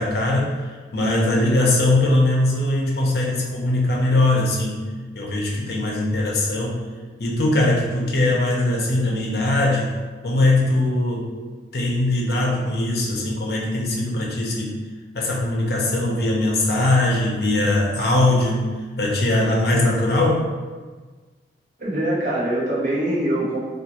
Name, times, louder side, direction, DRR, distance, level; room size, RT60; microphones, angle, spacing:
voice 1, 0.0-4.9 5.2-6.9 7.2-9.9 10.2-11.3 11.7-14.8 15.1-18.7 19.0-20.4, left 2 dB, 60° left, -3 dB, 0.6 m, -21 dB
voice 2, 21.8-23.6, right 1 dB, 45° right, -5 dB, 0.7 m, -23 dB
3.6 x 2.5 x 2.8 m, 1.4 s
head